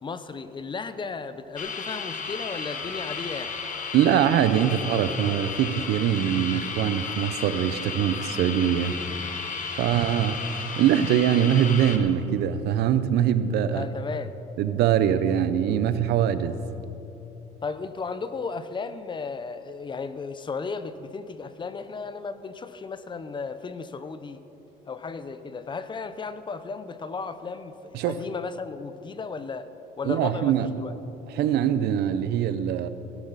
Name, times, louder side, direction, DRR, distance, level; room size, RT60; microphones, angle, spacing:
voice 1, 0.0-3.5 13.7-14.3 17.6-24.4 24.9-29.7 30.0-31.0, left 4 dB, 30° left, 12 dB, 0.6 m, -35 dB
sound 1, 1.6-12.0, left 5 dB, 50° left, 1.3 m, -34 dB
voice 2, 3.9-8.9 9.8-10.4 10.8-13.8 14.6-16.6 27.9-28.2 30.1-30.7 31.4-32.9, right 10 dB, 75° right, 12 dB, 0.7 m, -23 dB
17.0 x 11.5 x 4.1 m, 3.0 s
cardioid pair, 110°, 17 cm